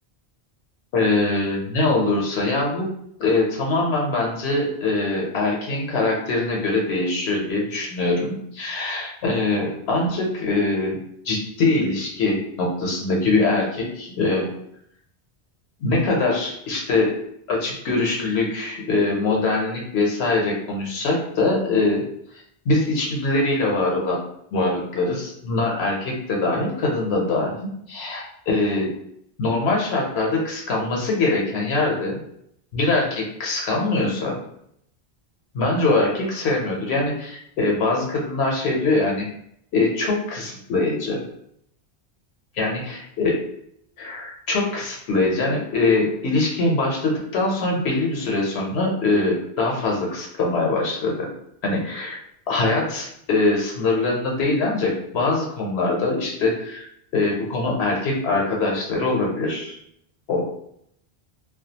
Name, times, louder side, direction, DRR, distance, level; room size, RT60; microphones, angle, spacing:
voice 1, 0.9-2.9 3.2-11.0 11.2-14.5 15.8-17.2 17.5-22.0 22.7-24.2 24.5-27.5 27.9-28.9 29.4-32.2 32.7-34.4 35.5-39.3 39.7-41.2 42.5-43.3 44.0-51.3 51.6-52.2 52.5-56.9 57.1-59.8 60.3-60.5, left 2 dB, 80° left, -1 dB, 0.8 m, -23 dB
2.3 x 2.2 x 2.7 m, 0.73 s
omnidirectional pair, 1.1 m